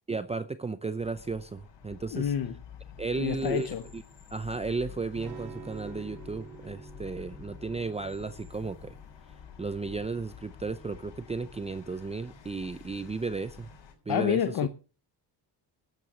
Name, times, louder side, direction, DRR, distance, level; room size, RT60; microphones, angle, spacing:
voice 1, 0.1-2.3 3.0-3.7 3.9-4.0 4.3-9.0 9.6-13.7 14.1-14.5, right 4 dB, 15° right, 0.5 m, -34 dB
sound 1, 1.0-13.9, left 8 dB, 75° left, 5.8 m, -49 dB
voice 2, 2.1-2.5 3.2-3.8 14.1-14.7, left 9 dB, 55° left, 1.0 m, -28 dB
Electric guitar / Strum, 5.1-10.9, right 4 dB, 60° right, 2.9 m, -49 dB
12.5 x 8.9 x 6.7 m
cardioid pair, 135°, 43 cm